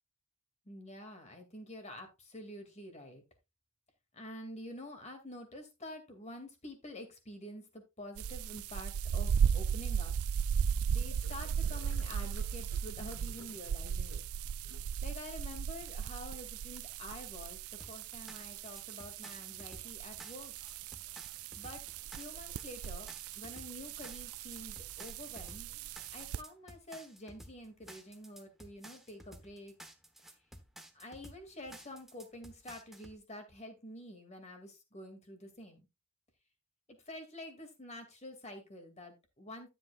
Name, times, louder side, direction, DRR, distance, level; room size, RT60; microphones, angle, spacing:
voice 1, 0.7-3.2 4.1-10.1 10.9-14.2 15.0-20.5 21.6-21.8 22.1-23.1 23.3-25.7 26.1-29.8 30.9-35.9 36.9-39.7, left 1 dB, 30° left, 6 dB, 2.4 m, -48 dB
sound 1, 8.2-26.4, right 7 dB, 90° right, 0.4 m, -36 dB
sound 2, 10.3-10.4 11.0-15.2, left 4 dB, 90° left, 0.6 m, -57 dB
sound 3, 17.8-33.2, right 1 dB, ahead, 1.1 m, -54 dB
12.5 x 7.8 x 2.4 m, 0.24 s
head